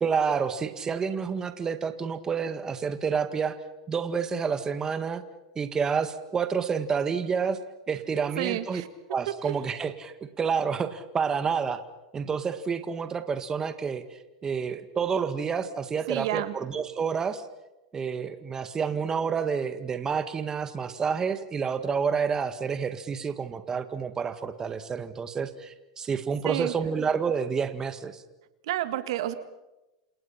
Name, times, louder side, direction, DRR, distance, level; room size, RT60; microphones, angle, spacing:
voice 1, 0.0-3.6 3.9-5.2 5.6-7.6 7.9-8.8 9.1-11.8 12.1-17.4 17.9-28.2, right 6 dB, 20° right, 10 dB, 1.8 m, -29 dB
voice 2, 8.4-8.9 9.5-9.6 16.1-16.5 26.4-26.7 28.7-29.3, right 14 dB, 70° right, 11 dB, 1.9 m, -30 dB
28.0 x 28.0 x 5.9 m, 1.0 s
hypercardioid pair, 115°, 3 cm